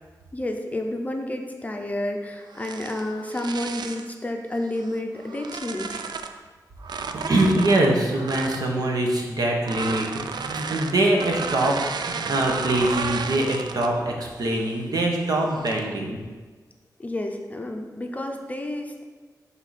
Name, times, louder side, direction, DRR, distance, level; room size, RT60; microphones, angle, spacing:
voice 1, 0.3-6.1 17.0-19.0, left 1 dB, 20° left, 3 dB, 0.6 m, -30 dB
sound 1, 2.5-4.1 4.8-6.4 6.8-8.7 9.6-14.0 14.4-14.8 15.4-15.9, right 5 dB, 90° right, 0.4 m, -33 dB
voice 2, 7.1-11.8 12.0-16.2, right 1 dB, 65° right, 0 dB, 1.2 m, -23 dB
11.0 x 3.8 x 4.2 m, 1.4 s
wide cardioid pair, 150°, 7 cm